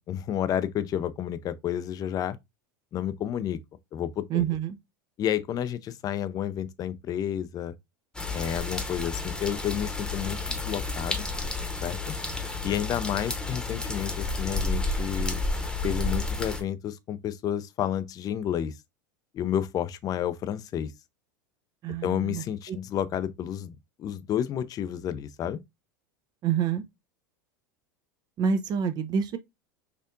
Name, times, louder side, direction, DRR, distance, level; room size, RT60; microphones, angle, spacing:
voice 1, 0.0-2.4 2.9-3.6 3.9-4.4 5.2-7.7 8.3-11.2 11.8-12.0 12.6-15.4 15.8-18.8 19.3-20.9 22.0-25.6, left 10 dB, 35° left, 0.4 m, -30 dB
voice 2, 4.3-4.8 21.8-22.4 26.4-26.8 28.4-29.4, right 7 dB, 40° right, 0.5 m, -27 dB
sound 1, 8.1-16.6, left 3 dB, 5° left, 0.9 m, -31 dB
4.4 x 2.6 x 2.5 m
hypercardioid pair, 90°, 11 cm